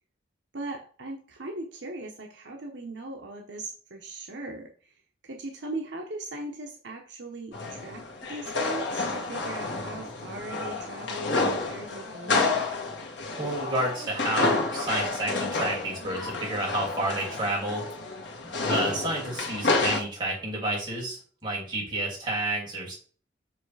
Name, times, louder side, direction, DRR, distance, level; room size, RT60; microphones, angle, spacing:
voice 1, 0.5-12.5, right 2 dB, 75° right, 2 dB, 1.0 m, -39 dB
sound 1, 7.5-20.0, left 3 dB, 75° left, 1.5 m, -29 dB
voice 2, 13.4-17.8 18.5-22.9, right 1 dB, 25° right, -4 dB, 2.9 m, -30 dB
7.3 x 3.2 x 4.8 m, 0.43 s
head